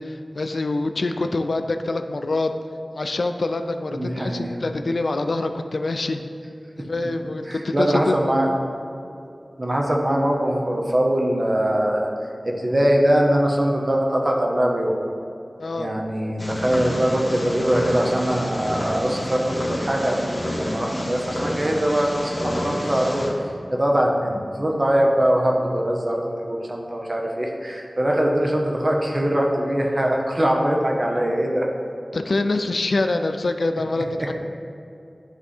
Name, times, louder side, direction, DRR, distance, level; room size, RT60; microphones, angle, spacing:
voice 1, 0.0-2.5 2.9-6.2 6.8-8.3 15.6-15.9 32.1-34.3, left 2 dB, 75° left, 7 dB, 0.4 m, -25 dB
voice 2, 3.9-4.5 7.5-8.5 9.6-12.1 12.4-15.0 15.8-23.3 23.7-31.7 34.2-34.3, right 1 dB, 40° right, 0 dB, 1.1 m, -22 dB
Purr, 16.4-23.3, equal, 40° left, 1.5 m, -29 dB
10.5 x 3.5 x 4.3 m, 2.6 s
wide cardioid pair, 55°, 0 cm